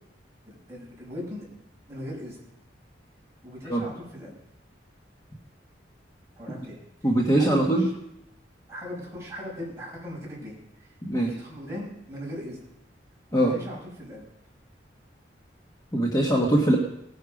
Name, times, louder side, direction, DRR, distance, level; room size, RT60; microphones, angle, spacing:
voice 1, 0.5-1.5 1.9-2.4 3.4-4.3 6.4-6.8 7.3-7.9 8.7-12.6 13.3-14.2, left 1 dB, 15° right, -5 dB, 6.1 m, -39 dB
voice 2, 7.0-7.9 11.0-11.3 13.3-13.5 15.9-16.8, right 1 dB, 20° left, -1 dB, 1.4 m, -22 dB
18.5 x 9.8 x 5.2 m, 0.80 s
head